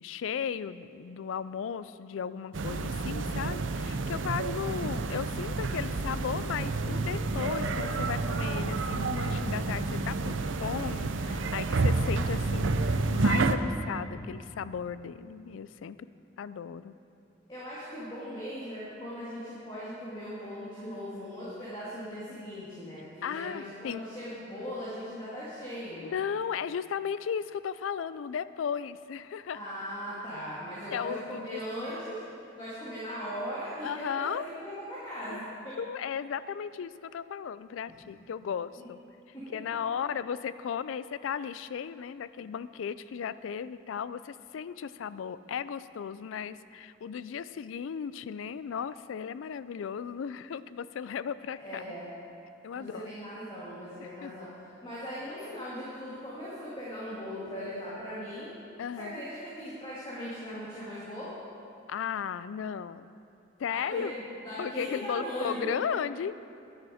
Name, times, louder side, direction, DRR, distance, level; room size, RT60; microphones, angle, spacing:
voice 1, 0.0-12.8 13.1-16.0 16.4-16.9 23.2-24.0 26.0-29.6 30.9-31.6 33.8-34.4 35.3-35.4 35.8-39.0 39.5-51.9 52.6-53.2 54.2-54.3 58.8-59.2 61.9-63.1 63.6-64.1 64.6-66.3, left 7 dB, 80° left, 15 dB, 0.3 m, -35 dB
sound 1, 2.5-13.6, right 3 dB, 70° right, 0.5 m, -29 dB
voice 2, 17.5-26.2 29.5-32.2 32.6-35.8 38.8-38.9 39.3-39.5 51.6-52.1 52.7-54.5 54.8-58.5 59.0-61.3 63.7-65.7, equal, 25° left, -9 dB, 2.1 m, -39 dB
10.5 x 10.5 x 4.9 m, 2.5 s
head